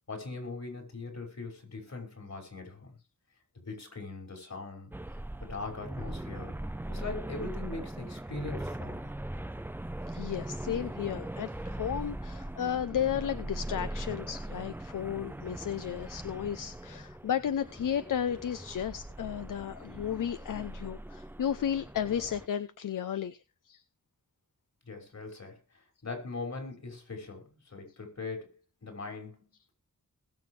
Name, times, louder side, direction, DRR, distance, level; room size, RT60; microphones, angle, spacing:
voice 1, 0.1-3.0 3.5-4.9 5.4-6.6 6.9-9.1 24.9-29.7, left 3 dB, 55° left, 5.9 m, -41 dB
sound 1, 4.9-22.5, right 1 dB, 5° right, 0.6 m, -40 dB
voice 2, 10.1-23.4 23.7-23.8, left 9 dB, 75° left, 0.7 m, -33 dB
20.5 x 7.1 x 3.3 m
cardioid pair, 65°, 32 cm